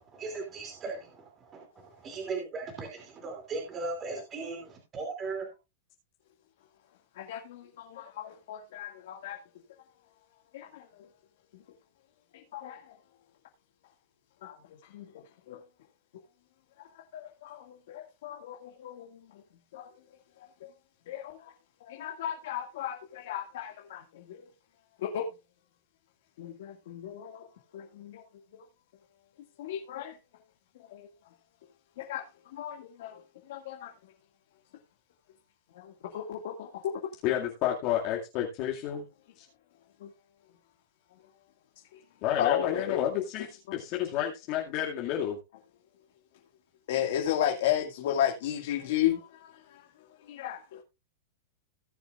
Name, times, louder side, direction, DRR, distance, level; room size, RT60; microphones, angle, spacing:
voice 1, 0.1-1.0 1.5-1.6 2.0-5.5, right 3 dB, 25° right, 2.8 m, -37 dB
voice 2, 7.1-9.4 10.5-11.1 11.5-11.6 12.3-13.0 14.4-15.6 16.8-19.4 19.7-19.9 20.4-20.7 21.1-21.5 21.9-24.4 25.0-25.3 26.4-27.5 27.7-28.3 28.5-28.6 29.6-30.2 30.8-31.1 32.0-32.3 32.5-33.9 35.7-37.0 40.0-40.1 41.9-42.0 42.4-43.0 43.7-43.8 46.9-49.9 50.2-50.8, left 10 dB, 65° left, 2.0 m, -34 dB
voice 3, 37.2-39.1 39.4-39.5 42.2-45.4, left 11 dB, 45° left, 2.2 m, -30 dB
18.5 x 7.1 x 2.4 m
supercardioid pair, 145°, 0 cm